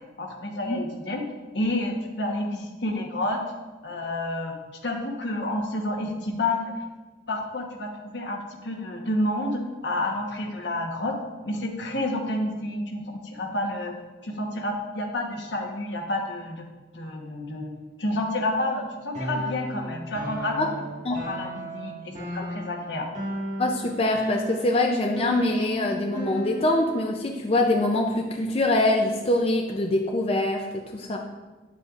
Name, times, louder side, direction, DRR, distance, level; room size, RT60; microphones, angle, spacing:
voice 1, 0.2-1.2 1.5-3.4 3.8-4.5 4.8-6.7 7.3-11.1 11.4-13.9 14.2-16.7 16.9-17.7 18.0-20.9 21.2-23.1, left 1 dB, 75° left, 1 dB, 1.2 m, -29 dB
sound 1, 19.1-27.0, right 1 dB, 40° right, 1.8 m, -34 dB
voice 2, 23.6-31.2, left 2 dB, 35° left, 1 dB, 0.5 m, -24 dB
9.3 x 7.5 x 2.5 m, 1.2 s
head